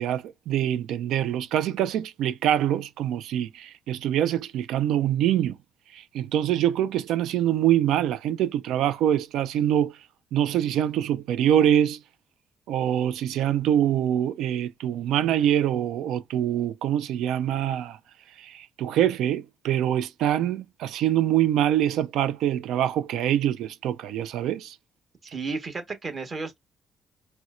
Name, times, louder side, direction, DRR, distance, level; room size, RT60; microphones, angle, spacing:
voice 1, 0.0-5.6 5.9-10.0 10.3-12.0 12.7-18.0 18.4-24.8, right 11 dB, 85° right, 0.4 m, -24 dB
voice 2, 25.2-26.6, right 4 dB, 40° right, 1.2 m, -33 dB
4.1 x 2.1 x 2.4 m
cardioid pair, 90°, 0 cm